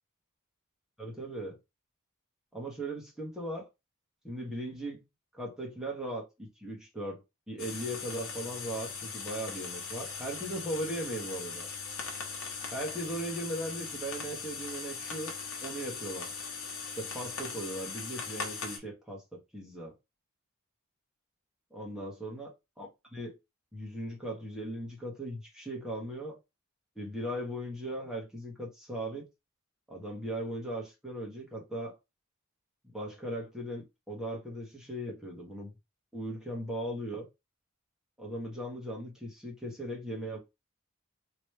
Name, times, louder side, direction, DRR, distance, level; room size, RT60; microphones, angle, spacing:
voice 1, 1.0-1.6 2.5-3.7 4.2-5.0 5.3-11.7 12.7-15.3 15.6-16.3 17.0-19.9 21.7-23.3 23.7-26.4 26.9-29.3 29.9-32.0 32.9-35.7 36.1-37.3 38.2-40.4, right 1 dB, 5° right, 1.3 m, -38 dB
sound 1, 7.6-18.8, left 5 dB, 70° left, 1.0 m, -40 dB
3.1 x 3.0 x 3.1 m
head